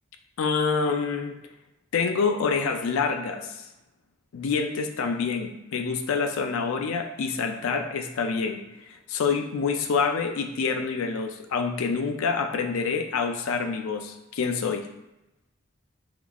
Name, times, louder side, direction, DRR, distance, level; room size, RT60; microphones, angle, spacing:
voice 1, 0.4-1.3 1.9-3.7 4.3-8.6 9.1-14.8, left 5 dB, 80° left, 6 dB, 0.4 m, -27 dB
3.6 x 3.5 x 2.3 m, 0.92 s
head